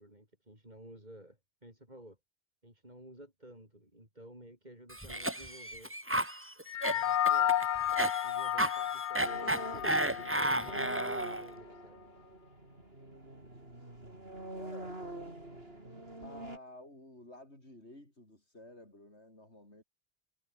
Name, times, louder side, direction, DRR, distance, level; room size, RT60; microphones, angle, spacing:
voice 1, 0.0-2.2 2.6-5.9 6.8-7.6 7.9-12.0, right 1 dB, 40° right, 7.7 m, -54 dB
Cough, 4.9-11.5, right 1 dB, 10° right, 2.1 m, -33 dB
sound 1, 6.7-11.3, left 10 dB, 60° left, 0.6 m, -32 dB
sound 2, 9.2-16.6, right 1 dB, 60° right, 6.2 m, -45 dB
voice 2, 14.5-15.0 16.2-19.8, left 1 dB, 75° left, 7.9 m, -52 dB
omnidirectional pair, 1.1 m